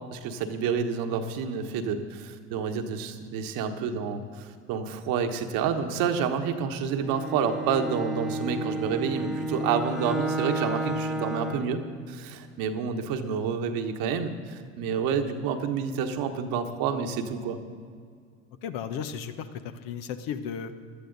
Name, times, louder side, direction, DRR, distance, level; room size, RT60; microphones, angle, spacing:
voice 1, 0.1-11.8 12.1-17.6, right 6 dB, 60° right, 6 dB, 1.3 m, -29 dB
Bowed string instrument, 7.0-11.8, right 1 dB, ahead, 1.1 m, -31 dB
voice 2, 18.6-20.7, left 7 dB, 55° left, 9 dB, 1.0 m, -35 dB
17.0 x 11.5 x 4.0 m, 2.1 s
hypercardioid pair, 70°, 39 cm